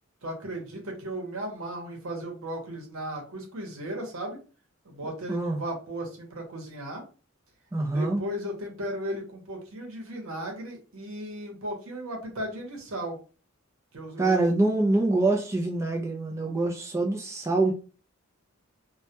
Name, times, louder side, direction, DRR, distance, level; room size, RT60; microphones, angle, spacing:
voice 1, 0.2-4.4 4.8-7.0 7.9-13.2 13.9-14.5, right 1 dB, 85° right, 0.8 m, -36 dB
voice 2, 5.3-5.6 7.7-8.2 14.2-17.7, right 2 dB, 15° right, 0.3 m, -25 dB
2.2 x 2.2 x 2.7 m
head